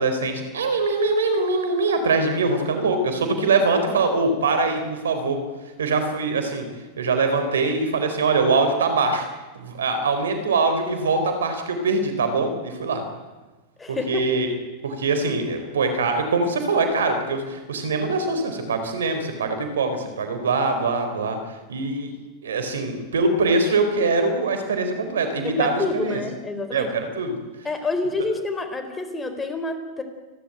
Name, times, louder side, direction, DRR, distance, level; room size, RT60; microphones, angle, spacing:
voice 1, 0.0-5.4 5.8-6.7 7.0-9.3 9.5-13.0 13.9-14.5 14.8-21.4 21.7-22.1 22.4-26.2 26.7-27.4, right 3 dB, 85° right, 7 dB, 4.4 m, -23 dB
voice 2, 13.8-14.3 25.4-26.9 27.6-30.0, left 3 dB, 15° left, 7 dB, 4.3 m, -28 dB
29.5 x 12.5 x 9.3 m, 1.2 s
hypercardioid pair, 105°, 0 cm